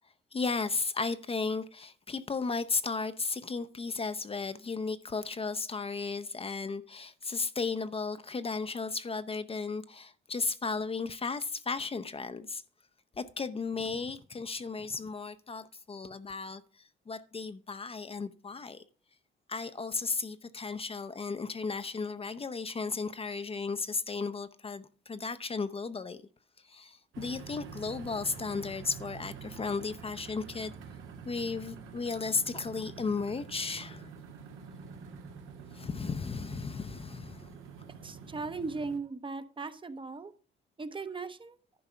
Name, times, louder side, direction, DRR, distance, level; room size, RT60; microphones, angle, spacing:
voice 1, 0.3-12.6 13.2-18.8 19.5-26.2 26.6-30.7 31.2-34.1 35.7-37.5, left 4 dB, 30° left, 0.6 m, -35 dB
sound 1, 27.1-39.0, right 5 dB, 90° right, 1.6 m, -47 dB
voice 2, 38.0-40.3 40.8-41.6, right 4 dB, 25° right, 0.8 m, -38 dB
11.0 x 4.8 x 5.5 m
cardioid pair, 90°, 20 cm